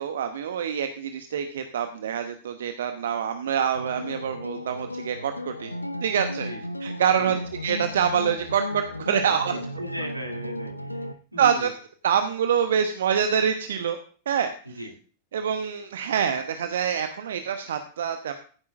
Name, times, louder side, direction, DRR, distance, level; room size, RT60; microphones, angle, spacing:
voice 1, 0.0-5.7 6.0-6.5 6.8-9.5 11.4-11.7 12.0-14.0 14.3-14.8 15.3-18.3, right 8 dB, 65° right, 8 dB, 0.8 m, -26 dB
sound 1, 3.7-11.1, left 1 dB, 85° left, 0.8 m, -35 dB
voice 2, 9.1-11.7 14.8-14.9, right 1 dB, 90° right, 1 dB, 2.6 m, -37 dB
15.0 x 9.5 x 2.5 m, 0.42 s
figure-of-eight pair, 90°, 0 cm